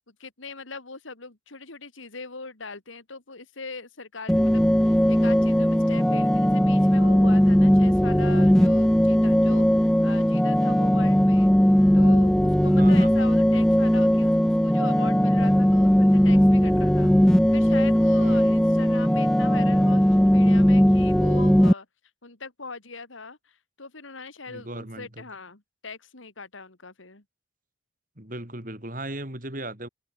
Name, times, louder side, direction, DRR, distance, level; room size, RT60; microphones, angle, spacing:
voice 1, 0.0-11.5 11.9-21.9 22.2-27.2, left 4 dB, 85° left, 2.7 m, -41 dB
sound 1, 4.3-21.7, equal, 5° left, 0.4 m, -19 dB
voice 2, 12.7-13.4 18.2-18.7 24.5-25.3 28.2-29.9, right 1 dB, 40° right, 3.9 m, -37 dB
head